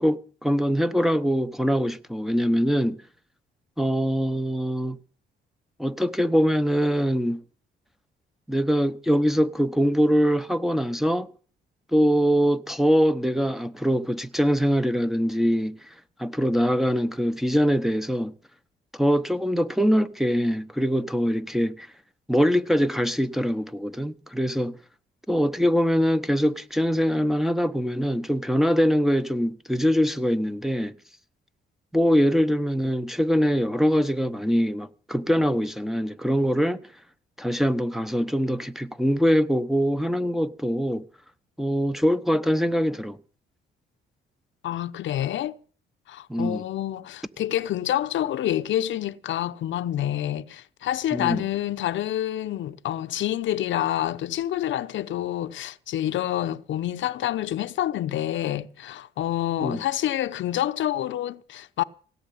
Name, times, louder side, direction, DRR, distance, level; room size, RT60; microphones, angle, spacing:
voice 1, 0.0-3.0 3.8-5.0 5.8-7.4 8.5-11.3 11.9-15.8 16.2-18.3 18.9-21.9 22.3-24.8 25.3-30.9 31.9-36.8 37.4-41.0 41.6-43.2 46.3-46.6 51.1-51.4 59.6-59.8, equal, ahead, 0.9 m, -23 dB
voice 2, 44.6-45.6 46.1-61.8, left 12 dB, 70° left, 0.8 m, -27 dB
17.5 x 6.5 x 10.0 m
cardioid pair, 90°, 20 cm